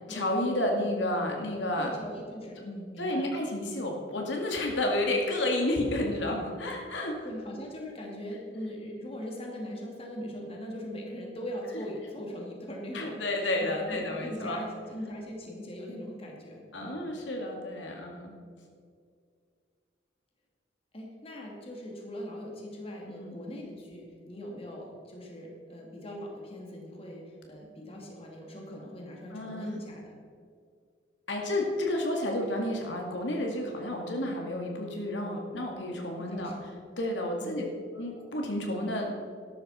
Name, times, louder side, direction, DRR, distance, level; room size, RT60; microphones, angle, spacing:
voice 1, 0.1-1.9 3.0-7.2 12.9-14.6 16.7-18.3 23.1-23.4 29.3-29.7 31.3-36.5 37.0-37.6 37.9-39.2, left 1 dB, 75° left, 1 dB, 2.1 m, -31 dB
voice 2, 1.8-3.3 7.0-17.0 20.9-30.2 36.2-36.7 37.4-37.6, equal, 30° left, -1 dB, 2.4 m, -41 dB
13.5 x 11.5 x 4.3 m, 2.2 s
head